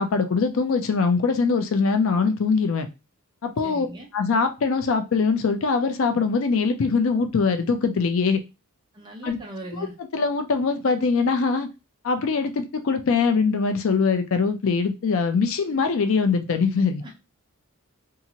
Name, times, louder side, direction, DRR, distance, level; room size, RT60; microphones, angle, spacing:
voice 1, 0.0-2.9 3.4-3.9 4.1-8.4 9.2-9.4 9.7-9.9 10.1-11.7 12.0-17.0, left 4 dB, 60° left, 0.4 m, -22 dB
voice 2, 3.6-4.1 8.9-10.0 17.0-17.2, right 1 dB, 20° right, 0.7 m, -38 dB
2.7 x 2.5 x 2.8 m
head